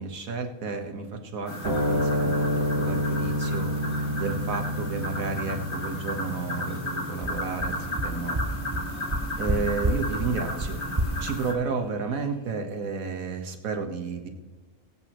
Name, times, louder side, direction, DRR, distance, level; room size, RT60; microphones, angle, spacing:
voice 1, 0.0-3.7 4.2-8.4 9.4-10.8 11.2-14.3, right 5 dB, 80° right, 5 dB, 1.7 m, -32 dB
sound 1, 1.5-11.5, left 1 dB, 55° left, 2.1 m, -34 dB
sound 2, 1.6-8.3, equal, 55° right, 4.9 m, -29 dB
sound 3, 7.2-7.3 7.6-7.7 8.0-8.1 8.3-8.4 8.7-8.8 9.1-9.5 9.8-9.9 10.2-10.3 10.6-10.7 11.0-11.1, right 1 dB, 25° right, 0.8 m, -26 dB
21.5 x 8.2 x 3.0 m, 1.3 s
omnidirectional pair, 1.4 m